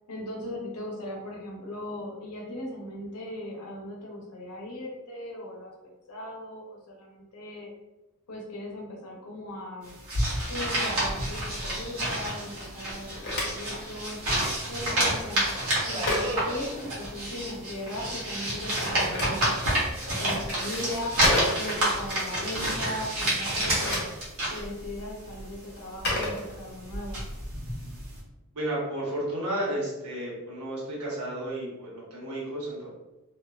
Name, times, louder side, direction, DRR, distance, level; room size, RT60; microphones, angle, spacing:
voice 1, 0.1-5.7 6.1-7.7 8.3-9.9 10.5-14.2 14.7-15.5 15.8-21.1 21.6-24.1 24.5-27.2, left 1 dB, 85° left, -1 dB, 0.7 m, -38 dB
sound 1, 9.8-25.8 26.0-28.2, right 1 dB, 65° right, 1.0 m, -30 dB
Subway metro underground, 11.6-21.5, equal, 25° right, 0.4 m, -45 dB
Telephone, 12.9-17.4 18.6-22.1 23.5-27.1, left 1 dB, 50° left, 0.8 m, -34 dB
voice 2, 28.5-32.9, right 1 dB, 90° right, -6 dB, 1.1 m, -32 dB
2.4 x 2.2 x 2.4 m, 0.99 s
head